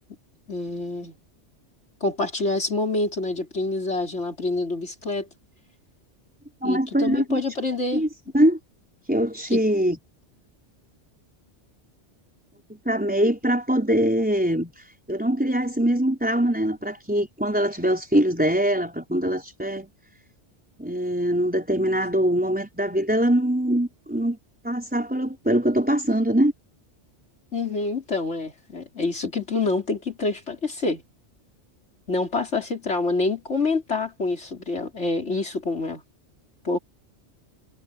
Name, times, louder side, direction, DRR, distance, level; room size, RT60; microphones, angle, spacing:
voice 1, 0.5-1.2 2.0-5.3 6.6-8.0 9.5-9.6 27.5-31.0 32.1-36.0 36.6-36.8, left 3 dB, 75° left, 4.1 m, -27 dB
voice 2, 6.6-7.4 7.9-8.1 8.3-8.6 9.0-10.0 12.8-19.9 20.8-24.4 24.6-26.5, right 1 dB, 5° right, 4.8 m, -23 dB
omnidirectional pair, 1.2 m